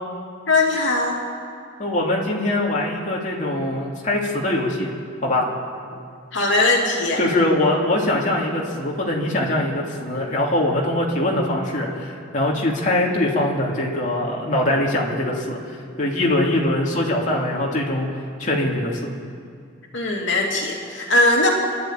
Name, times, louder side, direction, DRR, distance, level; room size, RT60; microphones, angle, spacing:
voice 1, 0.5-1.2 6.3-7.2 19.9-21.5, left 2 dB, 70° left, -1 dB, 2.9 m, -19 dB
voice 2, 1.8-4.9 5.2-5.5 7.2-18.1 18.4-19.1, left 1 dB, 40° left, -3 dB, 3.0 m, -22 dB
29.5 x 11.5 x 9.2 m, 2.3 s
head